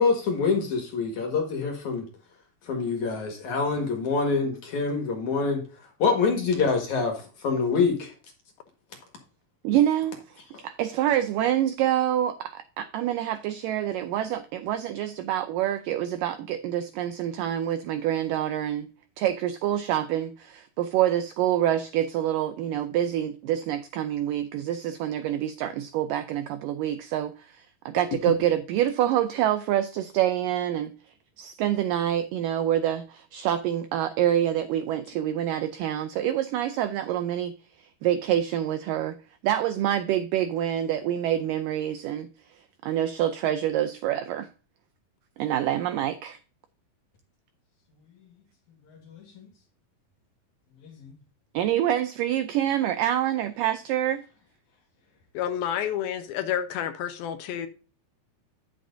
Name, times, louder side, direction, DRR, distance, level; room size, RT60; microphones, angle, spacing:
voice 1, 0.0-2.1 2.6-8.1 10.5-10.6 48.2-48.3 48.7-49.5 50.8-51.2, left 4 dB, 60° left, 2.7 m, -26 dB
voice 2, 9.6-10.2 10.6-18.9 19.2-30.9 31.4-39.2 39.4-42.3 42.8-44.5 45.4-46.4 51.5-54.2, right 11 dB, 80° right, 2.0 m, -26 dB
voice 3, 55.3-57.7, left 10 dB, 80° left, 2.7 m, -29 dB
11.0 x 7.3 x 2.6 m
omnidirectional pair, 4.4 m